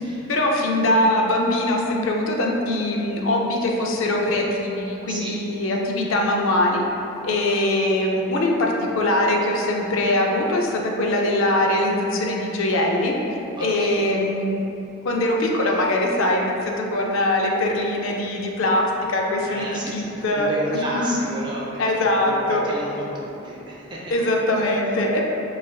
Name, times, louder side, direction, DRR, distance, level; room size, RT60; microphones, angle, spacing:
voice 1, 0.3-6.8 7.2-13.2 13.6-14.6 15.0-21.2 21.8-22.7 24.1-25.2, left 1 dB, 70° left, 0 dB, 0.4 m, -22 dB
voice 2, 5.1-5.4 13.6-14.2 19.5-24.1, right 1 dB, 20° right, -5 dB, 0.5 m, -32 dB
6.0 x 2.5 x 2.2 m, 3.0 s
head